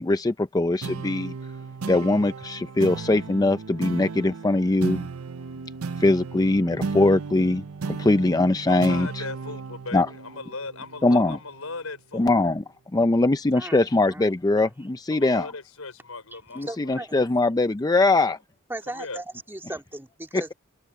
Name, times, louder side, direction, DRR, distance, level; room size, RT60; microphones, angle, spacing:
voice 1, 0.0-1.3 1.9-5.1 6.0-9.2 9.9-10.1 11.0-11.4 12.1-12.6 12.9-15.5 16.6-18.4 20.3-20.4, left 2 dB, 20° left, 0.5 m, -22 dB
sound 1, 0.8-11.6, right 4 dB, 80° right, 0.7 m, -35 dB
voice 2, 8.7-12.3 15.1-17.2 18.2-18.3 18.9-19.2, left 3 dB, 85° left, 5.1 m, -38 dB
voice 3, 16.6-17.1 18.7-20.5, right 1 dB, 10° right, 2.3 m, -37 dB
head